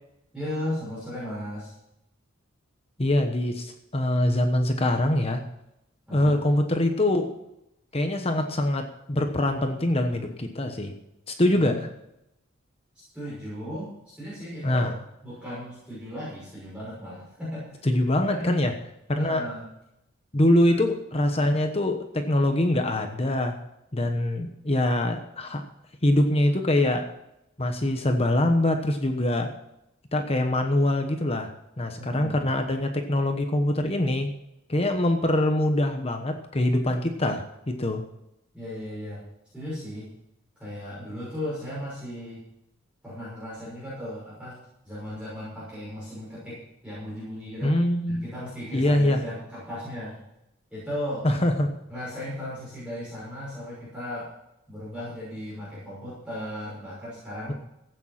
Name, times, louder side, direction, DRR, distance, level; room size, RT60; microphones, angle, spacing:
voice 1, 0.3-1.7 6.1-6.4 11.5-11.8 13.1-13.9 14.2-14.9 15.2-17.8 18.2-18.6 19.1-19.6 20.7-20.8 32.0-32.5 38.5-39.2 39.5-40.1 40.6-42.4 43.0-44.6 44.8-46.6 46.8-47.8 48.1-50.2 50.7-51.2 51.9-54.3 54.7-57.5, left 1 dB, 5° right, -9 dB, 6.2 m, -36 dB
voice 2, 3.0-5.4 6.1-7.3 7.9-10.9 11.3-11.9 14.6-15.0 17.8-18.7 19.1-19.5 20.3-23.5 23.9-25.6 26.0-27.1 27.6-29.5 30.1-31.5 31.8-34.3 34.7-38.0 47.6-48.3 48.7-49.2 51.2-51.7, left 1 dB, 30° left, 5 dB, 1.1 m, -24 dB
15.5 x 8.9 x 5.8 m, 0.84 s
head